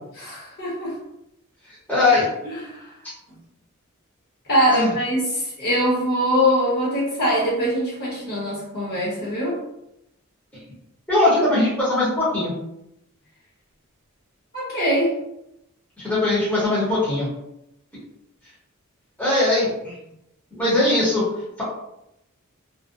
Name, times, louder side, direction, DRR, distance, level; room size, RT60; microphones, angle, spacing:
voice 1, 0.1-1.0 2.1-2.9 4.5-9.6 14.5-15.1, equal, 50° left, -6 dB, 1.1 m, -23 dB
voice 2, 1.9-2.3 4.7-4.9 11.1-12.5 16.0-17.3 19.2-19.9 20.6-21.2, left 2 dB, 10° left, -9 dB, 0.8 m, -20 dB
2.4 x 2.1 x 2.5 m, 0.84 s
head